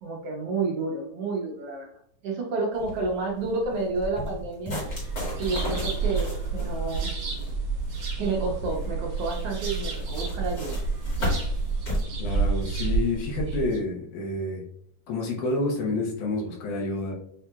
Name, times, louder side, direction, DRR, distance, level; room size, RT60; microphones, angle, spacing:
voice 1, 0.0-1.9 2.2-4.8 5.4-7.1 8.2-10.8 13.5-13.6, right 3 dB, 85° right, -3 dB, 1.3 m, -30 dB
sound 1, 2.8-12.0, left 1 dB, 35° left, 1.7 m, -34 dB
sound 2, 4.9-13.8, right 4 dB, 60° right, 2.2 m, -30 dB
voice 2, 12.2-14.6 15.1-17.1, left 2 dB, 75° left, -1 dB, 2.6 m, -29 dB
7.1 x 2.8 x 2.3 m, 0.68 s
omnidirectional pair, 3.7 m